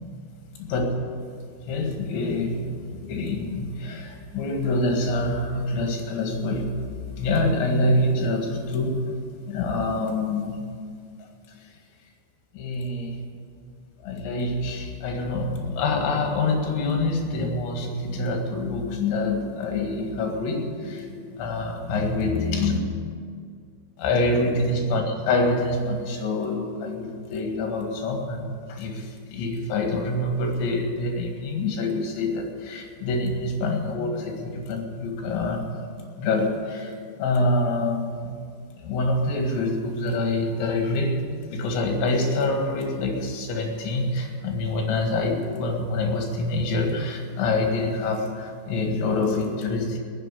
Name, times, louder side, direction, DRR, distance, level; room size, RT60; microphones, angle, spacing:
voice 1, 1.7-6.7 7.2-9.0 9.5-10.6 12.5-13.2 14.0-22.8 24.0-35.8 36.2-38.3 38.8-41.1 41.5-50.0, left 2 dB, 70° left, 2 dB, 4.1 m, -26 dB
18.5 x 6.8 x 9.8 m, 2.1 s
omnidirectional pair, 5.5 m